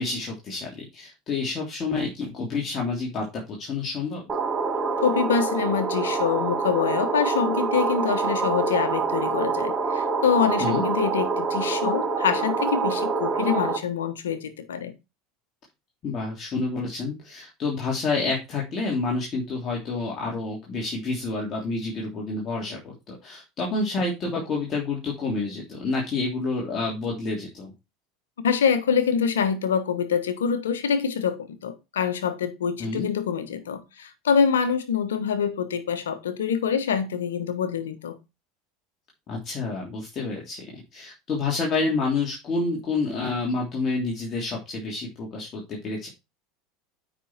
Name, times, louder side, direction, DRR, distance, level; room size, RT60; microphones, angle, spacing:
voice 1, 0.0-4.2 10.6-10.8 16.0-27.7 32.8-33.1 39.3-46.1, left 3 dB, 40° left, 3.1 m, -29 dB
sound 1, 4.3-13.8, right 4 dB, 25° right, 2.5 m, -26 dB
voice 2, 5.0-14.9 28.4-38.1, left 7 dB, 90° left, 1.4 m, -25 dB
8.4 x 5.7 x 4.3 m
hypercardioid pair, 90°, 0 cm